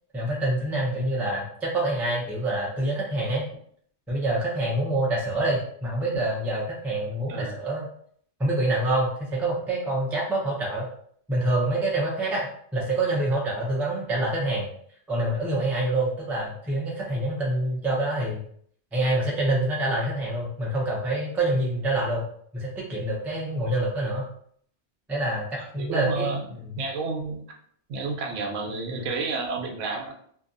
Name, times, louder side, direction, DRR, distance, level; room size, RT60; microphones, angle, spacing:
voice 1, 0.1-3.4 4.1-7.9 8.4-10.9 11.3-12.5 12.7-14.7 15.1-18.4 18.9-22.3 22.5-24.3 25.1-26.7 29.0-29.1, right 1 dB, 5° right, -4 dB, 0.3 m, -26 dB
voice 2, 25.6-26.5 26.8-27.4 27.9-30.1, right 3 dB, 85° right, 2 dB, 0.9 m, -30 dB
2.6 x 2.2 x 2.5 m, 0.62 s
omnidirectional pair, 1.2 m